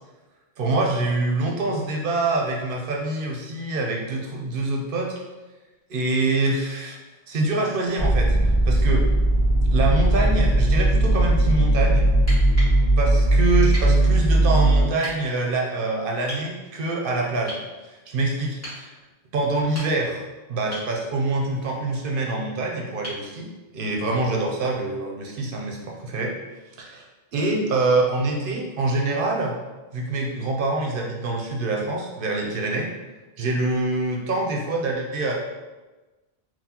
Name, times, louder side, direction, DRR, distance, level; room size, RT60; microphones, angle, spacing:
voice 1, 0.6-5.2 5.9-7.0 7.3-9.1 9.7-12.1 13.0-17.6 17.8-18.9 19.3-20.2 20.5-23.5 23.7-26.3 26.8-27.1 27.3-29.6 29.9-32.9 33.4-35.3, right 2 dB, 65° right, -1 dB, 0.7 m, -25 dB
sound 1, 8.0-14.8, right 1 dB, 75° left, 1.4 m, -18 dB
sound 2, 12.1-12.8 13.7-13.9 15.0-15.2 16.3-16.5 17.5-17.7 18.6-18.8 19.6-20.2 20.7-20.9 23.0-23.3 25.1-25.2, equal, 15° left, 1.4 m, -36 dB
3.8 x 2.3 x 2.8 m, 1.2 s
omnidirectional pair, 1.1 m